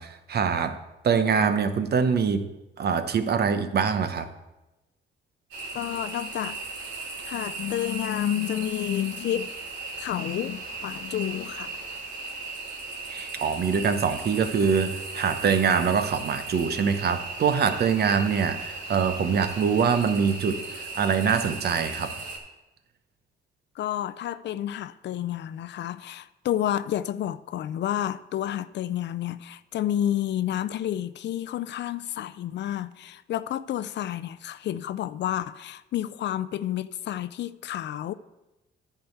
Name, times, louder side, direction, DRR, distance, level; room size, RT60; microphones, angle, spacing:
voice 1, 0.0-2.5 2.8-4.3 13.1-22.2, right 6 dB, 55° right, 0.9 m, -24 dB
sound 1, 5.5-22.4, right 3 dB, 80° right, 2.5 m, -37 dB
voice 2, 5.7-6.6 7.3-9.6 10.0-11.7 23.8-38.1, left 11 dB, 60° left, 0.4 m, -30 dB
10.0 x 4.7 x 8.0 m
cardioid pair, 90°, 20 cm